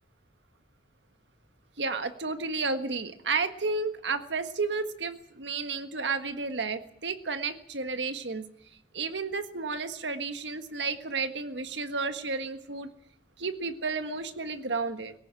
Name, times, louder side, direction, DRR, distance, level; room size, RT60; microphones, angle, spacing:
voice 1, 1.8-8.4 8.9-12.9 13.4-15.1, right 4 dB, 75° right, 8 dB, 1.6 m, -32 dB
19.0 x 17.0 x 9.0 m, 0.69 s
head